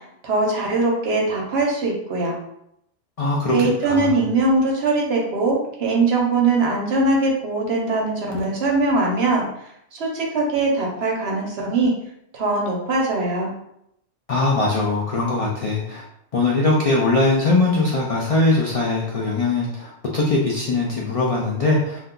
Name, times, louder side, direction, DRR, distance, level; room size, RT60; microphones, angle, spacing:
voice 1, 0.2-2.4 3.5-9.5 9.9-11.9 12.3-13.5, right 3 dB, 60° right, -1 dB, 0.9 m, -21 dB
voice 2, 3.2-3.6 3.8-4.2 14.3-16.0 16.3-22.0, left 2 dB, 70° left, -3 dB, 0.3 m, -21 dB
2.6 x 2.2 x 3.7 m, 0.76 s
omnidirectional pair, 1.3 m